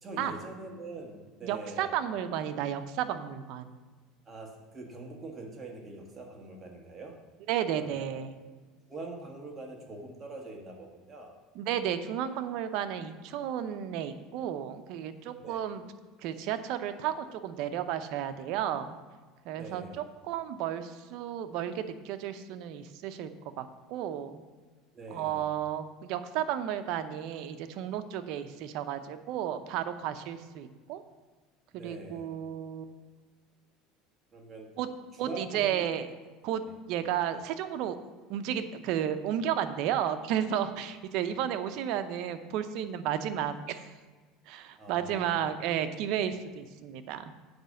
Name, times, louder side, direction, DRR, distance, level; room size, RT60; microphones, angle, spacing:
voice 1, 0.0-1.9 2.2-2.3 4.3-7.2 7.8-8.0 8.9-11.4 15.4-15.6 19.5-20.0 24.9-25.5 31.7-32.3 34.3-34.7 35.2-35.8 44.8-45.4, right 3 dB, 20° right, 1 dB, 1.5 m, -43 dB
voice 2, 1.4-3.7 7.5-8.4 11.5-15.8 16.2-18.9 19.4-23.3 23.6-24.4 25.1-31.0 31.7-32.9 34.8-34.9 35.2-36.1 36.4-36.6 36.9-38.0 38.3-43.9 44.5-47.2, right 10 dB, 60° right, 9 dB, 0.7 m, -33 dB
7.9 x 5.1 x 6.5 m, 1.4 s
cardioid pair, 140°, 0 cm